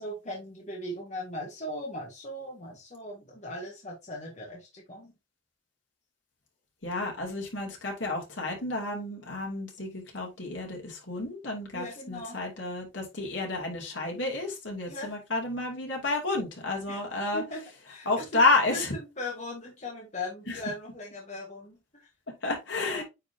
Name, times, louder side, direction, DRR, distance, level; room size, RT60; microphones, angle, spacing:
voice 1, 0.0-5.1 11.7-12.5 14.9-15.1 16.9-17.0 17.3-18.4 18.7-22.1 22.8-23.0, left 1 dB, 35° left, -1 dB, 1.5 m, -39 dB
voice 2, 6.8-17.4 18.1-18.9 20.5-20.6 22.4-23.0, left 3 dB, 70° left, 0 dB, 2.8 m, -30 dB
9.2 x 4.0 x 2.8 m, 0.24 s
head